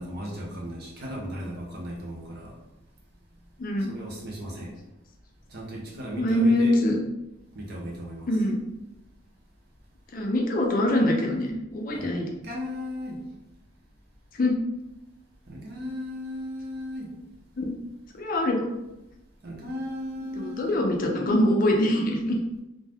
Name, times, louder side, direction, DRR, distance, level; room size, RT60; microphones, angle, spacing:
voice 1, 0.0-2.6 3.9-4.7 5.5-6.7 7.5-8.3 11.9-12.1 12.4-13.2 15.5-17.1 19.4-20.8, equal, 50° right, -2 dB, 0.8 m, -36 dB
voice 2, 6.2-7.0 8.3-8.6 10.1-12.3 14.4-14.6 17.6-17.7 18.1-18.7 20.3-22.4, left 1 dB, 40° left, 1 dB, 0.4 m, -24 dB
2.6 x 2.2 x 3.4 m, 0.94 s
head